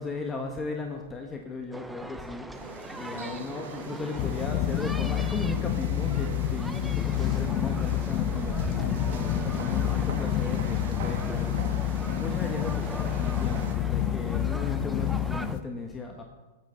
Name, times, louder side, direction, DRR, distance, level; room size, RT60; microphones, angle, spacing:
voice 1, 0.0-11.8 12.2-16.2, left 3 dB, 15° left, 2 dB, 1.5 m, -37 dB
sound 1, 1.7-15.6, right 1 dB, 5° right, 0.7 m, -40 dB
sound 2, 2.5-13.8, right 5 dB, 70° right, 2.0 m, -42 dB
sound 3, 4.2-15.6, left 11 dB, 45° left, 1.0 m, -28 dB
19.0 x 9.0 x 4.0 m, 1.2 s
hypercardioid pair, 120°, 0 cm